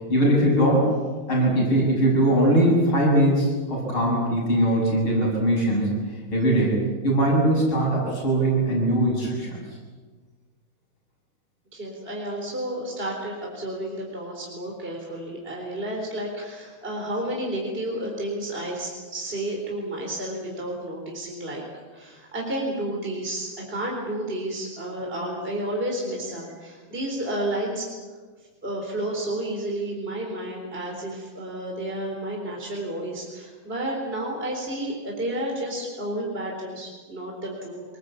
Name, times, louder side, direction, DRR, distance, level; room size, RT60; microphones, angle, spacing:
voice 1, 0.1-0.8 1.3-5.9 6.3-9.6, right 1 dB, 70° left, -3 dB, 8.4 m, -21 dB
voice 2, 11.7-21.6 21.9-27.9 28.6-37.8, right 1 dB, 25° right, -1 dB, 4.4 m, -31 dB
26.0 x 19.5 x 8.5 m, 1.4 s
omnidirectional pair, 2.4 m